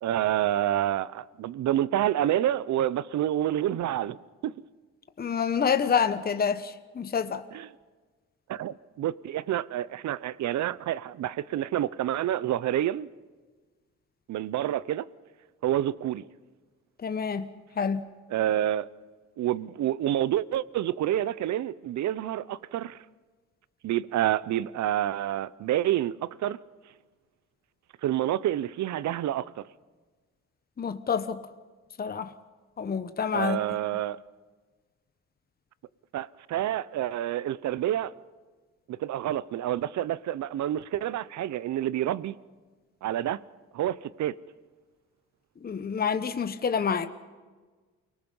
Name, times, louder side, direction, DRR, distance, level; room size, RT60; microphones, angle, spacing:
voice 1, 0.0-4.2 4.4-4.5 7.5-7.7 8.5-13.1 14.3-15.1 15.6-16.2 18.3-18.9 19.4-23.0 23.8-26.6 28.0-29.6 33.3-34.2 36.1-38.1 38.9-42.4 43.0-43.4 43.7-44.3, right 12 dB, 65° right, 0.7 m, -28 dB
voice 2, 5.2-7.4 17.0-17.5 17.8-18.0 30.8-31.4 32.0-32.3 32.8-33.8 45.6-47.1, left 6 dB, 30° left, 1.0 m, -27 dB
29.0 x 19.5 x 5.5 m
cardioid pair, 90°, 30 cm